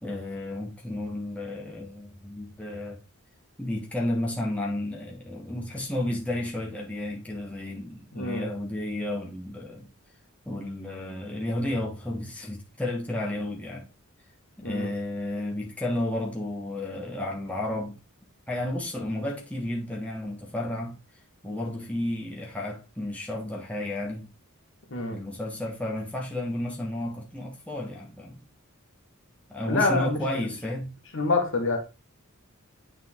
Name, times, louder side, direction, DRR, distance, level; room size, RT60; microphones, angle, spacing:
voice 1, 0.0-3.0 3.6-9.9 10.4-13.8 14.6-18.0 18.5-20.9 21.4-24.3 25.1-28.4 29.5-30.9, left 1 dB, 5° left, 1.3 m, -32 dB
voice 2, 8.1-8.5 14.6-14.9 24.9-25.2 29.7-30.2 31.1-31.8, left 3 dB, 60° left, 1.7 m, -26 dB
8.5 x 4.0 x 3.6 m
head